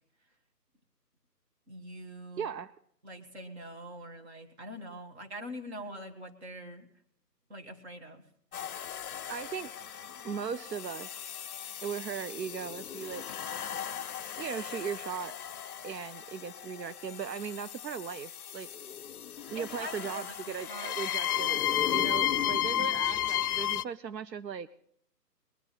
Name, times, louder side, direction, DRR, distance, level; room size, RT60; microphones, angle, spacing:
voice 1, 1.7-2.5 3.0-6.9 7.5-8.2 19.6-20.4 20.7-21.0 21.4-21.8, equal, 40° right, 3 dB, 1.8 m, -44 dB
voice 2, 2.4-2.7 9.3-9.7 10.2-11.4 11.8-13.2 14.4-15.4 15.8-18.7 19.5-21.6 21.9-24.7, right 7 dB, 80° right, 14 dB, 0.7 m, -38 dB
sound 1, 8.5-23.8, left 11 dB, 60° left, 0.5 m, -34 dB
20.5 x 11.0 x 4.2 m, 0.64 s
figure-of-eight pair, 155°, 50 cm